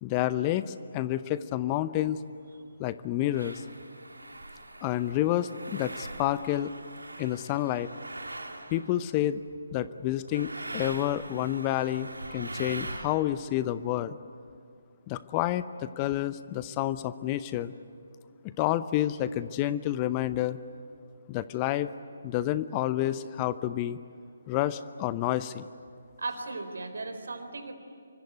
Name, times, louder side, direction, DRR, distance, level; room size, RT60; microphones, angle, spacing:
voice 1, 0.0-2.2 2.8-3.6 4.8-6.7 7.2-7.9 8.7-9.4 9.7-14.2 15.1-17.7 18.6-20.6 21.3-21.9 22.2-24.0 24.5-25.7, left 13 dB, 25° left, 14 dB, 0.7 m, -29 dB
sound 1, 2.0-2.1 2.9-3.0 3.3-9.1 10.3-13.1, right 2 dB, 85° right, 3.0 m, -42 dB
voice 2, 26.2-27.7, right 3 dB, 70° right, 7 dB, 4.0 m, -36 dB
25.5 x 24.5 x 9.5 m, 2.2 s
figure-of-eight pair, 145°, 0 cm